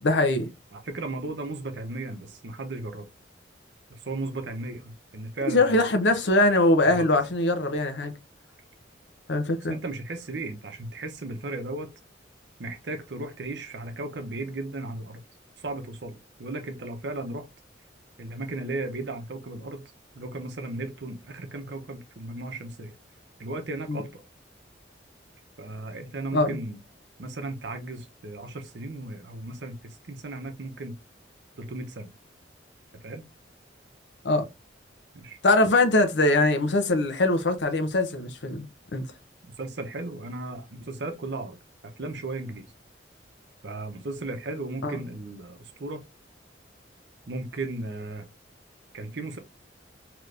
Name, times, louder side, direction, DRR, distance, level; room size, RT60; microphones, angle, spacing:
voice 1, 0.0-0.5 5.5-8.1 9.3-9.8 23.9-24.0 26.3-26.6 34.2-34.4 35.4-38.7 38.9-39.0 44.8-45.0, left 2 dB, 70° left, 0.7 m, -22 dB
voice 2, 0.7-3.1 3.9-5.8 6.8-7.1 9.7-11.9 12.6-15.2 15.6-17.5 18.2-22.9 23.4-24.2 25.6-26.8 27.2-31.0 31.6-32.1 33.0-33.2 35.1-35.4 39.6-41.6 41.8-42.7 43.6-46.1 47.3-48.3 48.9-49.4, right 2 dB, 65° right, 0.7 m, -35 dB
3.3 x 3.0 x 2.4 m
head